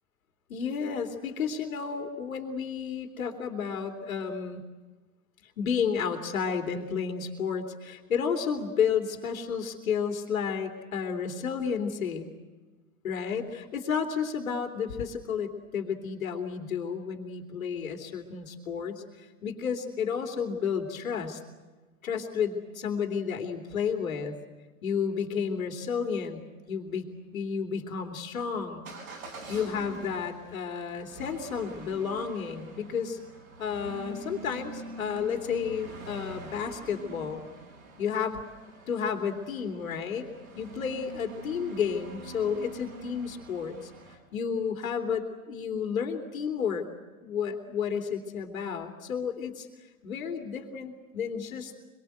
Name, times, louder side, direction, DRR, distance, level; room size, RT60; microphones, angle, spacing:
voice 1, 0.5-4.6 5.6-12.3 13.0-21.4 22.0-24.3 24.8-26.4 26.7-27.0 27.3-28.9 29.5-33.2 33.6-37.4 38.0-38.4 38.9-40.3 40.6-43.9 44.3-46.8 47.2-49.7 50.0-51.7, left 6 dB, 75° left, 5 dB, 3.0 m, -31 dB
Motor vehicle (road) / Engine starting / Accelerating revving vroom, 28.8-44.2, right 3 dB, 80° right, 6.9 m, -45 dB
25.0 x 23.5 x 8.0 m, 1.3 s
hypercardioid pair, 90°, 41 cm